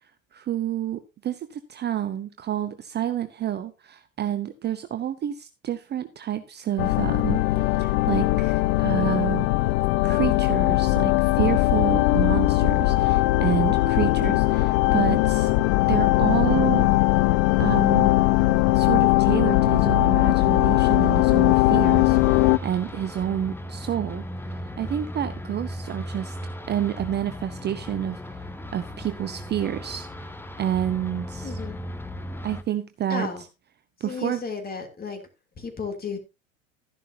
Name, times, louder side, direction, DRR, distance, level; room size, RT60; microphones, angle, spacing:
voice 1, 0.3-9.5 10.0-15.5 15.9-16.9 17.6-18.1 18.7-24.2 24.5-26.4 26.7-28.2 28.7-31.6 32.4-33.3 34.0-34.4, right 10 dB, 25° right, 9 dB, 0.8 m, -29 dB
sound 1, 6.8-22.6, left 18 dB, 50° left, 0.6 m, -20 dB
sound 2, 21.8-32.6, equal, 5° left, 0.9 m, -36 dB
voice 2, 31.4-31.8 33.1-33.4 34.0-35.2 35.6-36.2, left 5 dB, 20° left, 5 dB, 2.9 m, -33 dB
13.0 x 11.0 x 2.7 m, 0.27 s
figure-of-eight pair, 80°, 41 cm